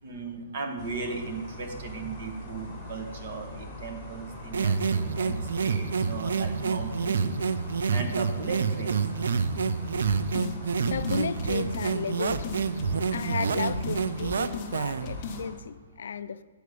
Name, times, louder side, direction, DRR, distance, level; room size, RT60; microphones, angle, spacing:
voice 1, 0.0-7.3 7.9-9.0, right 4 dB, 45° right, 1.1 m, -37 dB
sound 1, 0.8-15.5, left 1 dB, 5° right, 1.6 m, -43 dB
sound 2, 4.5-15.2, right 5 dB, 70° right, 0.4 m, -28 dB
sound 3, 10.0-10.5 10.9-11.9 12.3-13.3 13.7-14.7 15.1-15.4, left 4 dB, 25° left, 0.6 m, -37 dB
voice 2, 10.7-12.6 13.1-16.4, left 6 dB, 65° left, 0.3 m, -34 dB
7.7 x 4.9 x 6.7 m
hypercardioid pair, 180°, 0 cm